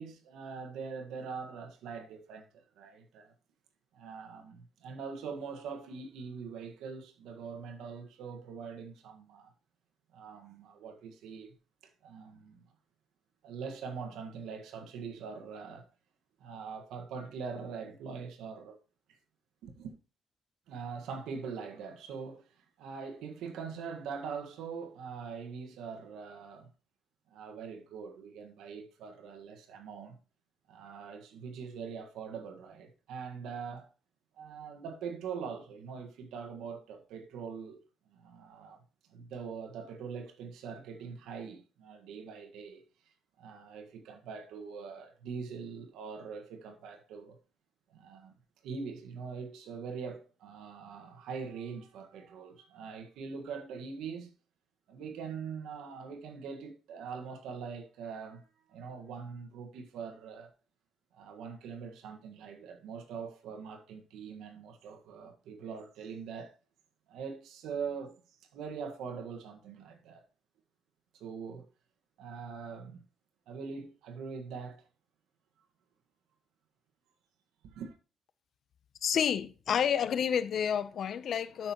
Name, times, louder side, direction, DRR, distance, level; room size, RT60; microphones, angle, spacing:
voice 1, 0.0-3.3 3.9-9.5 10.1-11.6 12.0-12.6 13.4-15.9 16.4-18.8 19.6-20.0 20.7-22.4 22.8-26.7 27.3-30.2 30.7-33.9 34.4-37.8 38.1-38.8 39.1-42.8 43.4-47.4 47.9-48.3 48.6-54.3 54.9-60.5 61.1-66.5 67.1-68.2 68.5-70.2 71.2-71.6 72.2-73.0 73.5-74.8 77.6-77.9, right 6 dB, 85° right, 1.6 m, -43 dB
voice 2, 79.0-81.7, left 8 dB, 65° left, 0.7 m, -29 dB
12.5 x 6.0 x 3.0 m
cardioid pair, 90°, 0 cm